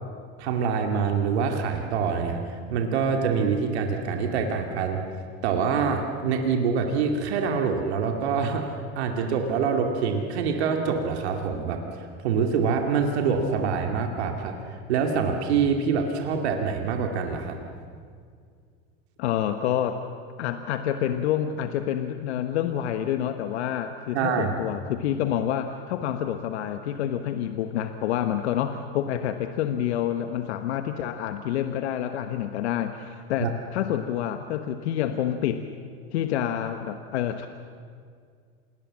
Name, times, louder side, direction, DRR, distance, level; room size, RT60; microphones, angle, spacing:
voice 1, 0.4-2.4 2.7-5.0 5.4-8.6 9.0-14.6 14.9-17.6 24.1-24.6 33.4-33.5, right 6 dB, 85° right, 3 dB, 2.5 m, -25 dB
voice 2, 19.2-20.0 20.4-35.6 36.1-37.5, left 10 dB, 85° left, 8 dB, 1.3 m, -28 dB
27.5 x 20.0 x 7.5 m, 2.2 s
supercardioid pair, 100°, 32 cm